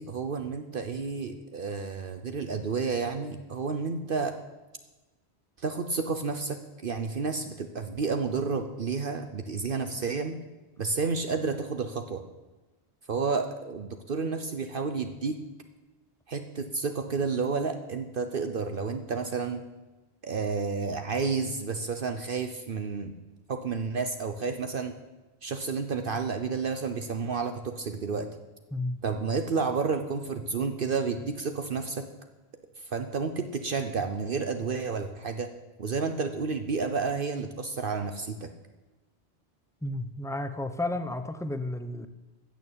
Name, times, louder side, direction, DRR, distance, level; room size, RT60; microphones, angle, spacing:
voice 1, 0.0-4.3 5.6-10.4 10.8-12.2 13.1-15.4 16.3-19.6 20.2-23.1 23.5-24.9 25.4-28.3 29.0-32.0 32.8-35.5 35.8-38.5, right 4 dB, 60° right, 7 dB, 1.0 m, -31 dB
voice 2, 28.7-29.0 39.8-42.1, left 2 dB, 5° left, 10 dB, 0.7 m, -32 dB
15.0 x 6.8 x 8.7 m, 1.1 s
omnidirectional pair, 1.1 m